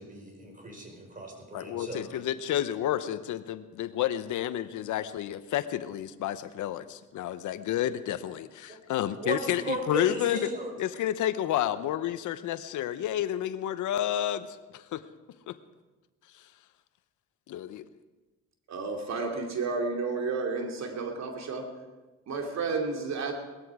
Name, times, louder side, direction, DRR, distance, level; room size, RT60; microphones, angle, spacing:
voice 1, 0.0-2.0 8.7-8.8 9.2-10.7, right 2 dB, 25° right, 3 dB, 5.0 m, -36 dB
voice 2, 1.5-10.5 10.8-15.0 15.5-15.6 17.5-17.8, left 11 dB, 80° left, 13 dB, 0.9 m, -30 dB
voice 3, 18.7-21.7 22.3-23.3, right 4 dB, 60° right, 3 dB, 2.6 m, -31 dB
19.5 x 14.0 x 4.9 m, 1.2 s
cardioid pair, 90°, 30 cm